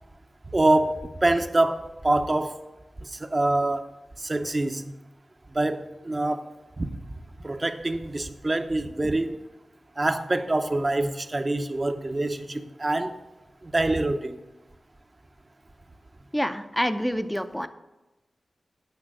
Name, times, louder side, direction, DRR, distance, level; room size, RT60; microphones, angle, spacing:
voice 1, 0.5-2.6 3.0-3.9 4.2-4.9 5.5-6.5 6.8-7.0 7.4-9.4 10.0-13.2 13.6-14.4, right 2 dB, 35° right, 8 dB, 0.8 m, -25 dB
voice 2, 16.3-17.7, equal, 5° left, 10 dB, 0.7 m, -27 dB
8.9 x 5.8 x 7.7 m, 1.0 s
cardioid pair, 60°, 0 cm